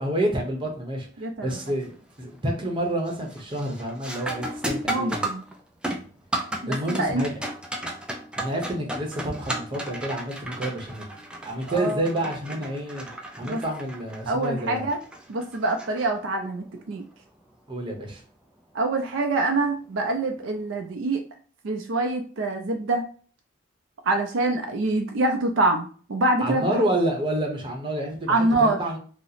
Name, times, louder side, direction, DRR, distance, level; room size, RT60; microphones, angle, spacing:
voice 1, 0.0-1.9 2.2-5.2 6.7-7.3 8.4-11.1 11.4-14.9 17.7-18.2 26.4-29.0, right 1 dB, 25° right, 1 dB, 0.8 m, -29 dB
voice 2, 1.2-1.6 4.9-5.4 6.6-7.2 11.7-12.0 13.5-13.6 14.3-15.0 15.3-17.0 18.7-21.2 21.6-23.0 24.1-26.7 28.3-28.8, right 2 dB, 70° right, 3 dB, 0.5 m, -25 dB
sound 1, 1.5-1.9 2.3-2.7 3.1-16.6 19.1-19.2 20.0-20.2, right 1 dB, 5° right, 0.4 m, -34 dB
2.8 x 2.0 x 4.0 m, 0.42 s
head